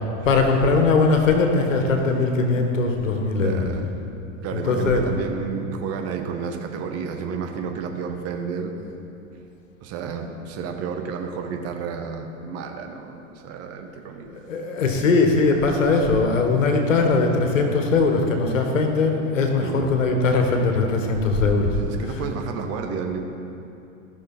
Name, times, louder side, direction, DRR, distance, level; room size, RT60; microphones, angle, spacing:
voice 1, 0.2-3.6 4.5-5.0 14.3-21.8 22.1-22.2, left 3 dB, 80° left, 3 dB, 1.5 m, -20 dB
voice 2, 3.3-3.9 4.4-8.7 9.8-14.5 19.6-19.9 21.7-23.2, right 6 dB, 40° right, 4 dB, 1.3 m, -31 dB
15.5 x 6.4 x 4.3 m, 2.8 s
hypercardioid pair, 100°, 38 cm